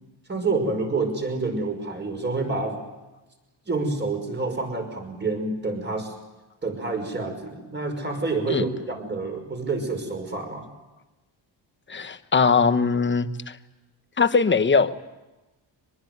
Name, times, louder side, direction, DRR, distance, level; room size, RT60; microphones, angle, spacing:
voice 1, 0.3-2.8 3.7-6.1 6.6-10.7, right 3 dB, 25° right, 4 dB, 5.7 m, -28 dB
voice 2, 11.9-13.6 14.2-15.0, left 5 dB, 25° left, 11 dB, 1.1 m, -21 dB
24.5 x 21.5 x 9.6 m, 1.1 s
wide cardioid pair, 160°, 46 cm